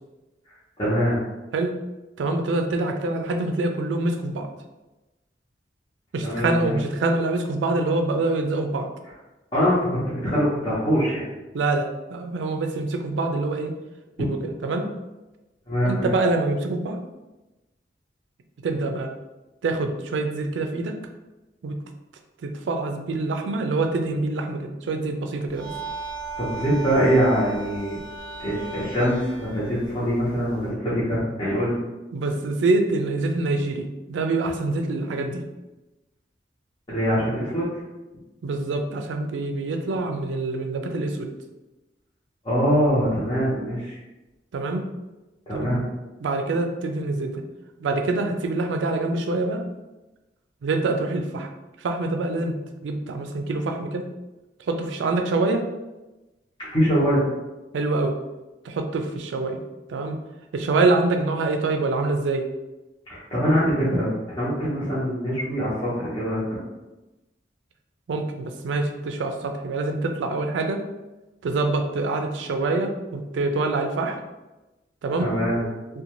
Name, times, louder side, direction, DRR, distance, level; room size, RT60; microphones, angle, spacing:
voice 1, 0.8-1.2 6.2-6.7 9.5-11.2 15.7-16.1 26.4-28.0 28.4-31.8 36.9-37.7 42.4-44.0 45.5-45.8 56.6-57.2 63.1-66.6 75.2-75.6, equal, 25° left, -10 dB, 0.7 m, -23 dB
voice 2, 2.2-4.5 6.1-8.9 11.5-13.7 14.2-14.9 15.8-17.0 18.6-19.1 19.6-21.0 21.6-21.7 22.4-25.7 32.1-35.4 38.4-41.3 44.5-44.8 45.5-45.8 46.2-47.4 47.8-49.6 50.6-51.5 51.8-52.6 52.8-54.1 54.7-55.6 57.7-58.2 58.6-59.6 59.9-60.2 60.5-62.5 68.1-70.8 71.4-74.2 75.0-75.7, right 2 dB, 85° right, 5 dB, 0.4 m, -25 dB
sound 1, 25.5-30.7, right 3 dB, 60° left, 1.1 m, -37 dB
2.6 x 2.2 x 2.9 m, 1.1 s
head